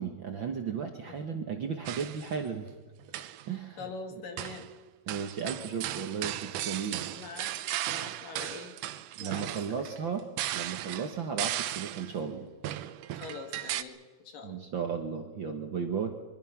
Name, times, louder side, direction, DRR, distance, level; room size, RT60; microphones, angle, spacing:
voice 1, 0.0-2.7 3.5-3.9 5.1-7.1 9.2-10.3 10.5-12.5 14.4-16.2, right 6 dB, 55° right, 4 dB, 1.4 m, -35 dB
sound 1, 1.9-2.4 3.0-3.5 4.4-4.7 5.1-12.2 12.6-13.8, right 13 dB, 80° right, 2.3 m, -36 dB
voice 2, 3.8-4.7 7.0-7.5 7.9-8.7 9.2-9.9 11.2-11.4 13.1-14.0 14.3-14.7, left 4 dB, 90° left, 5 dB, 4.0 m, -44 dB
24.0 x 22.5 x 5.9 m, 1.5 s
omnidirectional pair, 3.7 m